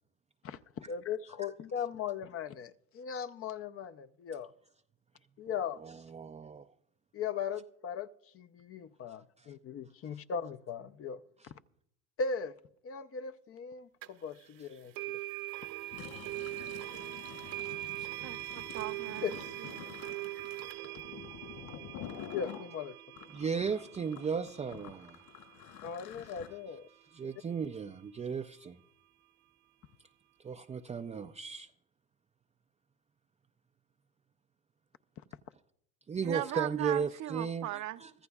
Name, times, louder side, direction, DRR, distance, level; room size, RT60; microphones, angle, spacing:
voice 1, 0.4-4.5 5.4-5.8 7.1-8.1 8.3-11.2 12.2-12.5 12.8-15.2 19.2-19.3 22.3-23.0 25.8-26.9, left 6 dB, 35° left, 0.7 m, -38 dB
voice 2, 5.8-6.7 9.4-9.5 23.3-25.2 27.1-28.8 30.4-31.7 36.1-38.1, right 6 dB, 15° right, 0.5 m, -35 dB
sound 1, 14.0-14.1 14.9-25.9, right 18 dB, 70° right, 1.2 m, -42 dB
Fill (with liquid), 15.8-22.6 23.1-26.5, left 9 dB, 65° left, 6.2 m, -48 dB
voice 3, 18.0-20.0 36.2-38.0, right 14 dB, 45° right, 0.7 m, -39 dB
24.0 x 14.5 x 2.4 m
supercardioid pair, 90°, 39 cm